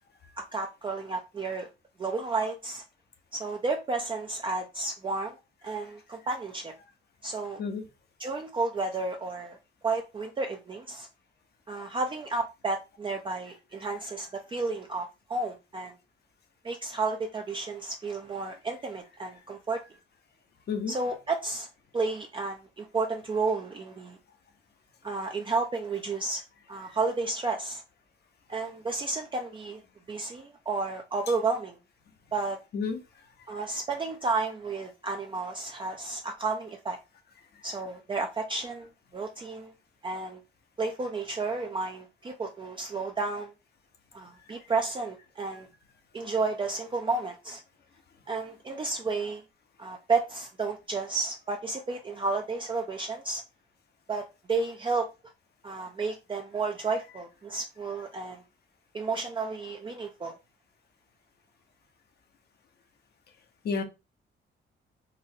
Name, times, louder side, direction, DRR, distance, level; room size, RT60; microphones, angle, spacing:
voice 1, 0.4-1.7 2.0-2.8 3.3-5.4 5.6-6.7 7.2-7.6 8.2-9.6 9.8-11.1 11.7-16.0 16.6-19.8 20.9-21.7 21.9-24.2 25.0-26.4 26.7-27.8 28.5-29.8 30.1-31.8 32.3-32.6 33.5-37.0 37.6-39.7 40.0-40.4 40.8-43.5 44.1-45.7 46.1-47.6 48.3-49.4 49.8-53.4 54.1-55.1 55.6-58.4 58.9-60.3, right 3 dB, 25° right, 0.5 m, -32 dB
voice 2, 7.6-7.8 20.7-20.9 32.7-33.0 63.6-63.8, left 5 dB, 55° left, 0.8 m, -30 dB
3.9 x 2.1 x 2.6 m
cardioid pair, 90°, 20 cm